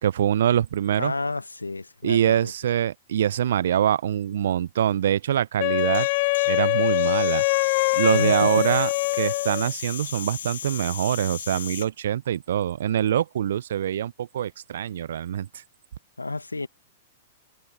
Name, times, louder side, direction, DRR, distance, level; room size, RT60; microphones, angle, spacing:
voice 1, 0.0-1.1 2.0-6.1 6.5-7.4 8.0-8.9 9.2-15.5, right 10 dB, 65° right, 0.6 m, -24 dB
voice 2, 1.0-2.5 8.1-8.8 16.2-16.7, left 3 dB, 90° left, 1.6 m, -30 dB
Wind instrument woodwind instrument, 5.6-9.7, left 28 dB, 45° left, 0.5 m, -23 dB
sound 1, 5.8-11.9, left 9 dB, 65° left, 1.2 m, -37 dB
figure-of-eight pair, 105°, 0 cm